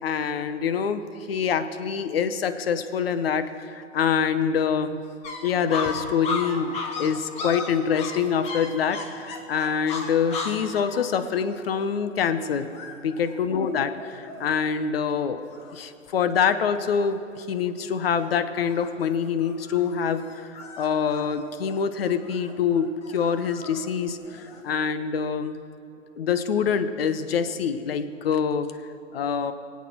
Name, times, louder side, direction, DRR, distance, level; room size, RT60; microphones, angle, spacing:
voice 1, 0.0-5.0 5.4-12.8 13.0-25.6 26.2-28.7 29.1-29.5, left 7 dB, 50° left, 11 dB, 0.9 m, -25 dB
sound 1, 5.2-14.7 15.1-15.2 15.5-16.1 16.4-17.1 17.5-17.8 18.2-24.7, left 4 dB, 15° left, 1.0 m, -36 dB
21.0 x 8.4 x 4.5 m, 2.6 s
figure-of-eight pair, 120°, 39 cm